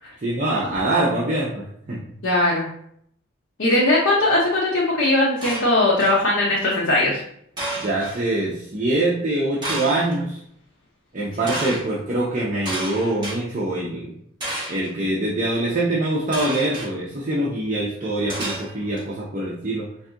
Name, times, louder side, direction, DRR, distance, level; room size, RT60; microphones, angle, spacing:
voice 1, 0.2-2.0 7.8-10.4 11.1-14.1 14.7-19.9, right 1 dB, 40° right, -4 dB, 0.5 m, -24 dB
voice 2, 2.2-2.7 3.6-7.2, left 1 dB, 75° left, -4 dB, 0.7 m, -19 dB
sound 1, 5.4-6.2 7.6-8.2 9.6-10.2 11.5-11.8 12.7-13.4 14.4-14.9 16.3-16.9 18.3-19.0, right 1 dB, 20° right, 1.3 m, -30 dB
4.0 x 2.6 x 3.5 m, 0.69 s
head